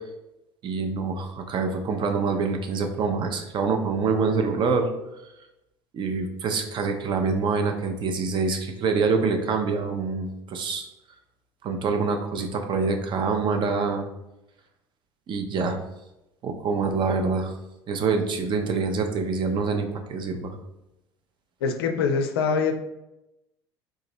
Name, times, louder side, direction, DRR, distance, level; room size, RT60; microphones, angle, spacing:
voice 1, 0.6-4.9 5.9-10.9 11.6-14.0 15.3-15.8 16.4-17.5 17.9-20.6, right 4 dB, 35° right, 5 dB, 0.5 m, -25 dB
voice 2, 21.6-22.7, left 5 dB, 70° left, 6 dB, 0.4 m, -24 dB
3.6 x 2.9 x 2.7 m, 0.91 s
figure-of-eight pair, 65°, 13 cm